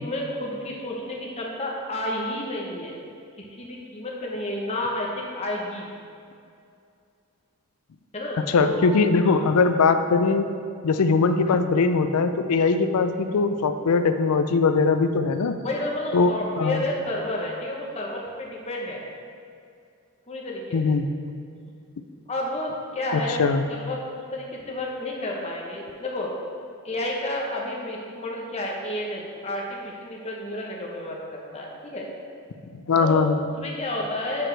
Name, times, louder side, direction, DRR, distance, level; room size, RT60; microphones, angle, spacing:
voice 1, 0.0-3.0 3.4-5.9 8.1-8.9 9.2-9.4 15.6-19.0 20.3-20.9 22.3-26.3 26.8-32.1 33.0-33.2 33.6-34.5, left 1 dB, 30° left, -2 dB, 0.9 m, -31 dB
voice 2, 8.5-10.5 10.8-15.6 16.1-16.8 20.7-21.1 23.1-23.6 32.9-33.4, left 4 dB, 85° left, 9 dB, 0.4 m, -21 dB
10.0 x 4.8 x 3.3 m, 2.4 s
head